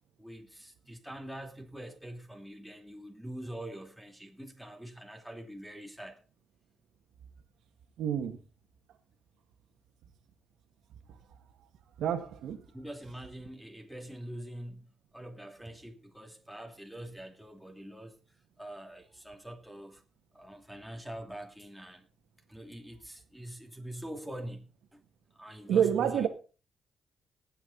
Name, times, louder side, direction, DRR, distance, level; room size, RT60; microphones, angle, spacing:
voice 1, 0.2-6.2 12.7-14.9 15.1-18.2 18.6-20.0 20.3-22.1 22.5-25.0 25.3-26.3, right 1 dB, ahead, 2.5 m, -44 dB
voice 2, 8.0-8.4 12.0-12.6 25.7-26.3, right 9 dB, 90° right, 1.8 m, -28 dB
19.0 x 8.0 x 4.1 m
cardioid pair, 115°, 0 cm